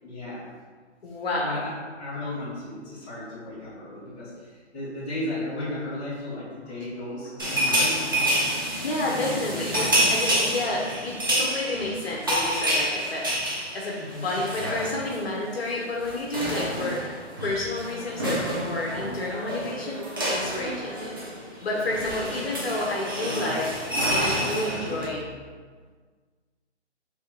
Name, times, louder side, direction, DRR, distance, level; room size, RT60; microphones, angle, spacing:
voice 1, 0.0-0.5 1.4-8.4 14.0-14.3 21.8-22.0 22.3-22.4, left 1 dB, 15° left, -11 dB, 1.5 m, -35 dB
voice 2, 1.0-1.6 8.8-13.5 13.7-17.1 17.4-20.0 20.3-21.2 21.6-25.4, left 2 dB, 55° left, -3 dB, 1.0 m, -30 dB
sound 1, 7.4-15.3 15.5-15.7 16.0-25.1, equal, 20° right, 0.4 m, -28 dB
3.5 x 3.3 x 4.4 m, 1.5 s
hypercardioid pair, 160°, 35 cm